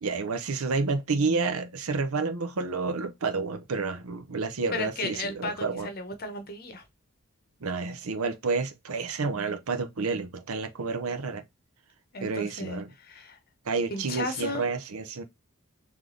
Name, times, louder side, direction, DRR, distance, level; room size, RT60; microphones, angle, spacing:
voice 1, 0.0-5.9 7.6-11.4 12.2-12.9 13.6-15.2, right 4 dB, 80° right, 0.7 m, -30 dB
voice 2, 4.7-6.8 12.1-13.4 13.9-14.7, left 2 dB, 45° left, 0.9 m, -34 dB
3.5 x 3.3 x 3.8 m
head